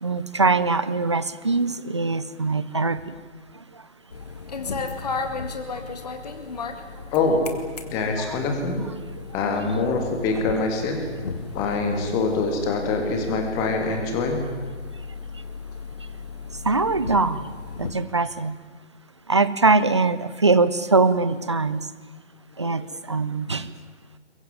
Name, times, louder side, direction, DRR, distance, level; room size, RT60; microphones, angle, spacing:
voice 1, 0.0-3.1 8.1-8.4 16.6-17.5 17.8-18.5 19.3-21.9 22.6-23.7, right 3 dB, 25° right, 15 dB, 0.7 m, -22 dB
sound 1, 4.1-17.9, left 4 dB, 35° left, 2.1 m, -35 dB
voice 2, 7.1-7.4 7.9-8.8 9.3-11.0 11.5-14.4, left 3 dB, 10° left, 4 dB, 1.9 m, -24 dB
22.5 x 22.0 x 9.3 m, 1.4 s
figure-of-eight pair, 150°, 36 cm